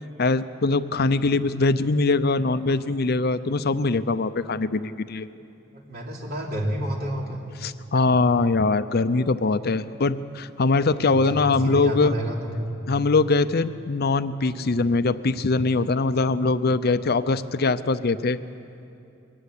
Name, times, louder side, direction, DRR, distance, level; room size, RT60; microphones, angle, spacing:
voice 1, 0.2-5.3 7.6-12.1 12.9-18.4, left 3 dB, 50° left, 13 dB, 0.6 m, -22 dB
voice 2, 5.7-7.4 11.1-12.7, right 1 dB, 50° right, -1 dB, 3.1 m, -30 dB
22.0 x 15.0 x 9.8 m, 2.7 s
head